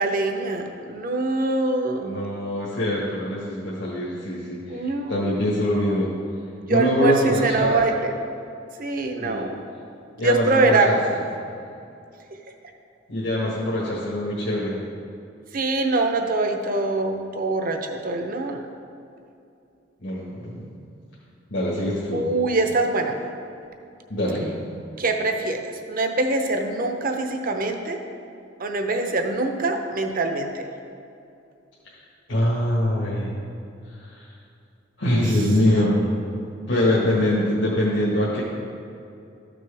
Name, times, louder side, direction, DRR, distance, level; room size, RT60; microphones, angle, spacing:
voice 1, 0.0-2.1 4.7-5.3 6.7-8.1 8.8-9.6 10.2-10.9 15.5-18.6 22.1-23.1 25.0-28.0 28.6-30.6, right 2 dB, 50° right, 5 dB, 0.8 m, -24 dB
voice 2, 2.0-6.1 6.7-7.9 9.2-9.5 10.2-11.0 13.1-14.8 20.0-20.6 21.5-22.2 24.1-24.5 32.3-33.3 34.1-34.3 35.0-36.1 36.7-38.4, left 1 dB, 75° left, -6 dB, 1.6 m, -23 dB
13.5 x 6.1 x 3.4 m, 2.6 s
head